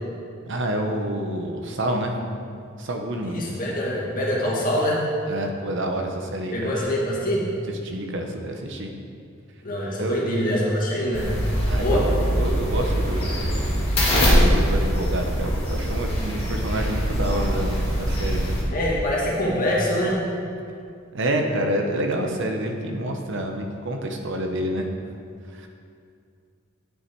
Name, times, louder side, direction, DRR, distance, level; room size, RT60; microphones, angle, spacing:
voice 1, 0.4-2.2 2.8-3.4 5.3-6.7 7.8-8.9 10.0-10.2 11.7-13.7 14.1-18.6 21.1-24.9 25.4-25.7, right 1 dB, 65° right, 3 dB, 1.0 m, -28 dB
voice 2, 3.2-5.1 6.5-7.5 9.6-11.4 11.8-12.0 18.7-20.3, equal, 45° left, -4 dB, 2.0 m, -24 dB
sound 1, 11.1-18.6, equal, 30° left, 2.3 m, -23 dB
9.3 x 6.9 x 4.7 m, 2.3 s
head